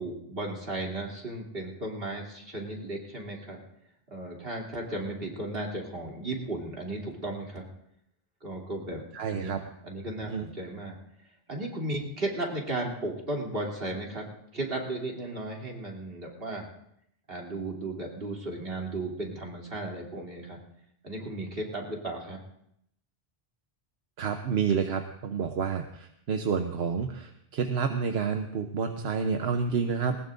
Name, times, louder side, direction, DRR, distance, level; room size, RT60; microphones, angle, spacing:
voice 1, 0.0-3.6 4.1-7.6 8.4-9.6 9.8-11.0 11.5-14.3 14.5-16.7 17.3-20.6 21.0-22.4, right 2 dB, 70° right, -2 dB, 3.2 m, -35 dB
voice 2, 9.1-9.6 10.3-10.5 24.2-30.2, right 6 dB, 85° right, 6 dB, 1.1 m, -29 dB
20.0 x 20.0 x 2.6 m, 0.75 s
omnidirectional pair, 1.0 m